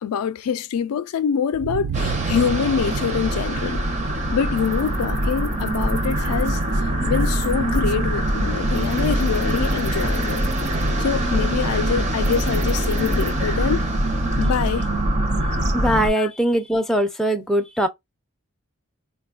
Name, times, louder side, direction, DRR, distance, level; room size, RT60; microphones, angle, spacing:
voice 1, 0.0-3.8 4.3-6.6 7.0-10.4 11.0-13.8 14.4-14.9 16.2-16.3, left 7 dB, 80° left, 0.4 m, -25 dB
sound 1, 1.5-6.1, right 8 dB, 80° right, 0.3 m, -32 dB
sound 2, 1.9-16.1, right 1 dB, 30° right, 0.6 m, -23 dB
voice 2, 15.7-17.9, right 1 dB, ahead, 0.4 m, -21 dB
3.9 x 2.2 x 2.3 m
head